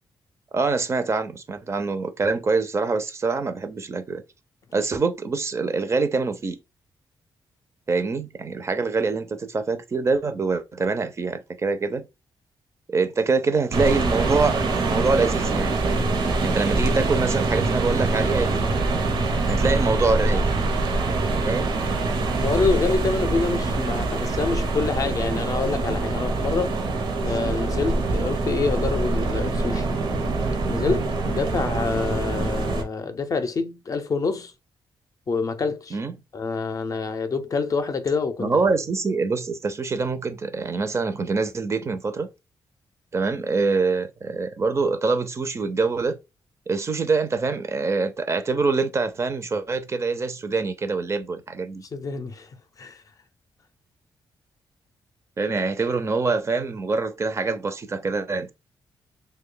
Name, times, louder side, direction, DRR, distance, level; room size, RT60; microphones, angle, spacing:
voice 1, 0.5-4.2 4.7-6.6 7.9-12.0 12.9-16.0 16.4-18.6 19.5-20.4 21.4-21.8 35.9-36.1 38.4-42.3 43.1-46.2 46.7-51.8 55.4-58.5, right 4 dB, 35° right, 0.5 m, -25 dB
sound 1, 13.7-32.8, right 3 dB, 65° right, 0.8 m, -24 dB
voice 2, 22.3-26.8 27.2-29.9 30.7-34.5 35.3-36.0 36.3-38.6 51.9-52.5 52.8-53.0, left 4 dB, 45° left, 0.5 m, -26 dB
3.1 x 2.2 x 3.7 m
cardioid pair, 110°, 8 cm